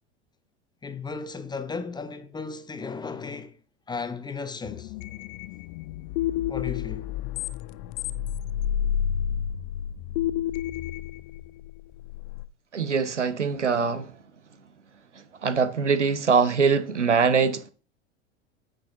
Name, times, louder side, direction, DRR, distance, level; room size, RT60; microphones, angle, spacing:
voice 1, 0.8-3.6 3.9-4.9 6.5-7.1, left 5 dB, 10° left, 0.8 m, -35 dB
sound 1, 4.6-12.5, left 10 dB, 45° left, 0.5 m, -30 dB
voice 2, 12.7-14.1 15.4-17.7, right 5 dB, 85° right, 0.9 m, -23 dB
9.3 x 6.7 x 3.7 m
figure-of-eight pair, 85°, 35 cm